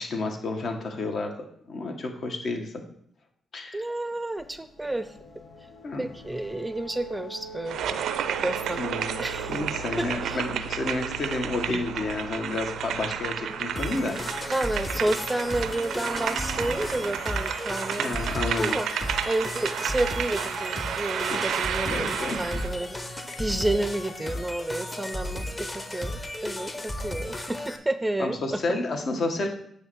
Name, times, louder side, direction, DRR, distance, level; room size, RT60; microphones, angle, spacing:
voice 1, 0.0-1.3 1.7-2.7 3.5-3.8 5.8-6.1 8.8-9.1 9.5-14.5 18.0-18.8 21.3-21.6 21.8-22.4 28.2-29.5, left 2 dB, 60° left, 4 dB, 1.4 m, -30 dB
voice 2, 3.7-5.1 6.0-8.8 9.2-9.6 10.0-10.4 14.5-18.1 18.6-18.9 19.3-28.8, right 1 dB, 10° right, 11 dB, 0.5 m, -30 dB
sound 1, 4.4-17.2, equal, 85° left, 2.2 m, -42 dB
sound 2, 7.7-22.7, right 9 dB, 80° right, 0.4 m, -31 dB
sound 3, 13.8-27.8, left 1 dB, 25° left, 1.0 m, -34 dB
9.1 x 3.3 x 6.2 m, 0.66 s
cardioid pair, 70°, 0 cm